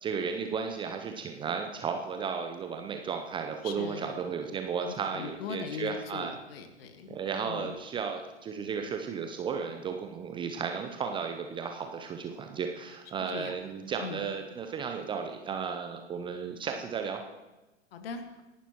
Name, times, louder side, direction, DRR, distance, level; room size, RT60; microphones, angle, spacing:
voice 1, 0.0-6.3 7.1-17.2, right 6 dB, 15° right, 5 dB, 0.6 m, -34 dB
voice 2, 3.6-4.2 4.8-7.2 7.5-7.8 13.3-13.5 14.0-14.3 17.9-18.4, left 6 dB, 50° left, 7 dB, 1.8 m, -40 dB
26.0 x 11.0 x 3.0 m, 1.1 s
figure-of-eight pair, 100°, 37 cm